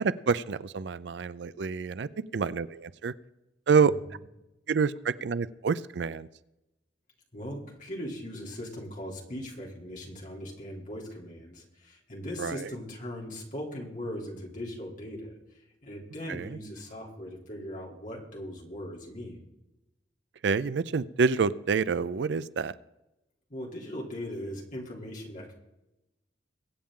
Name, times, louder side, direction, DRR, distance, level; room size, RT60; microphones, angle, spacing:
voice 1, 0.0-3.1 3.7-3.9 4.7-6.3 12.4-12.7 16.3-16.6 20.4-22.7, right 5 dB, 70° right, 17 dB, 0.4 m, -27 dB
voice 2, 7.3-15.3 15.8-19.4 23.5-25.5, equal, 45° left, -2 dB, 3.2 m, -39 dB
23.0 x 8.7 x 3.8 m, 0.95 s
head